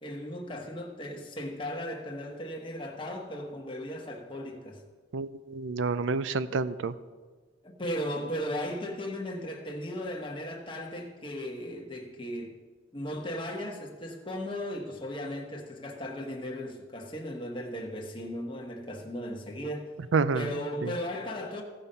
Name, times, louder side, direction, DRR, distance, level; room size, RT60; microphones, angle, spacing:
voice 1, 0.0-4.8 6.5-6.6 7.6-12.6 12.9-19.9 20.3-21.6, equal, 25° left, 1 dB, 1.3 m, -36 dB
voice 2, 5.1-6.9 20.1-20.5 20.8-20.9, right 4 dB, 75° right, 15 dB, 0.5 m, -28 dB
15.5 x 5.4 x 5.5 m, 1.4 s
head